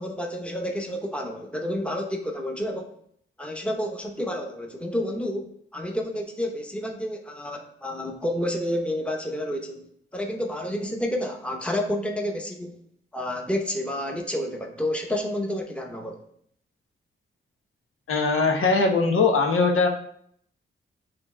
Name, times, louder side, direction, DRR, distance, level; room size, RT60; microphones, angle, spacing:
voice 1, 0.0-3.0 3.4-12.8 13.1-16.2, left 1 dB, 5° left, 2 dB, 0.9 m, -30 dB
voice 2, 18.1-19.9, left 4 dB, 85° left, 3 dB, 1.1 m, -21 dB
8.7 x 3.2 x 4.3 m, 0.66 s
wide cardioid pair, 115°, 21 cm